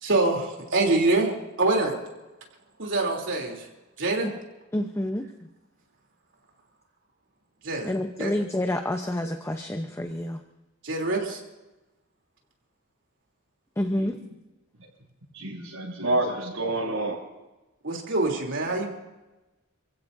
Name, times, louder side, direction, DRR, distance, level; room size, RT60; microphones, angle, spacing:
voice 1, 0.0-1.3 1.6-2.0 2.8-3.7 4.0-4.3 7.6-7.9 8.2-8.3 10.8-11.4 17.8-18.9, right 2 dB, 65° right, 0 dB, 3.3 m, -25 dB
voice 2, 4.7-5.3 7.8-10.4 13.8-14.2, left 1 dB, 15° left, 5 dB, 0.8 m, -28 dB
voice 3, 15.3-17.2, right 2 dB, 80° right, -2 dB, 7.4 m, -28 dB
29.0 x 16.0 x 2.7 m, 1.1 s
head